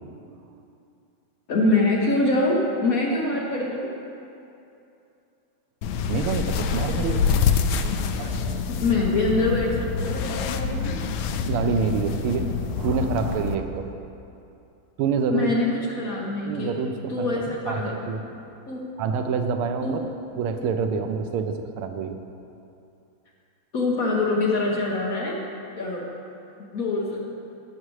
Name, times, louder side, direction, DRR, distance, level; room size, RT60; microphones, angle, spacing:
voice 1, 1.5-3.9 8.8-10.9 15.3-16.7 17.1-18.0 18.7-18.9 19.8-20.0 23.7-25.4 25.7-26.0 26.7-27.2, left 2 dB, 55° left, -3 dB, 1.0 m, -24 dB
sound 1, 5.8-13.6, left 6 dB, 75° left, 1.3 m, -26 dB
voice 2, 6.1-7.2 7.7-8.6 11.5-13.8 15.0-15.5 16.5-18.3 19.0-20.0 20.4-22.2, right 6 dB, 90° right, 7 dB, 1.6 m, -27 dB
15.5 x 6.5 x 3.2 m, 2.7 s
omnidirectional pair, 2.4 m